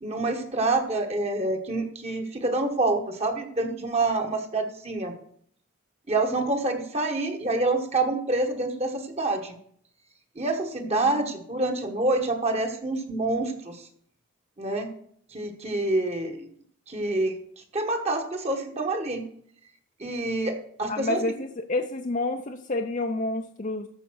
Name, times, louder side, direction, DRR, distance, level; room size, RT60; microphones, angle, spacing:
voice 1, 0.0-5.1 6.1-9.6 10.4-13.8 14.6-14.9 15.3-16.5 16.9-17.4 17.7-19.2 20.0-21.2, right 2 dB, 30° right, 4 dB, 1.3 m, -27 dB
voice 2, 10.8-11.4 20.9-23.9, left 2 dB, 35° left, 4 dB, 0.6 m, -29 dB
13.5 x 5.2 x 6.3 m, 0.64 s
head